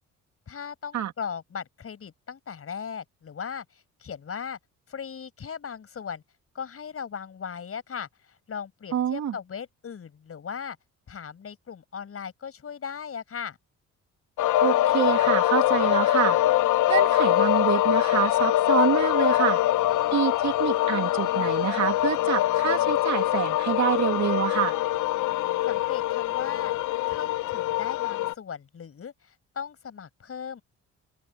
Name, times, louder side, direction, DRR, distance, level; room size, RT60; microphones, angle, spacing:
voice 1, 0.5-4.6 4.9-6.2 6.5-10.8 11.1-13.6 25.7-26.7 27.1-30.6, left 7 dB, 50° left, 8.0 m, -38 dB
voice 2, 8.9-9.4 14.6-16.4 16.9-19.6 20.1-24.8, right 10 dB, 65° right, 2.6 m, -26 dB
sound 1, 14.4-28.3, left 14 dB, 80° left, 0.8 m, -23 dB
open air
cardioid pair, 90°, 30 cm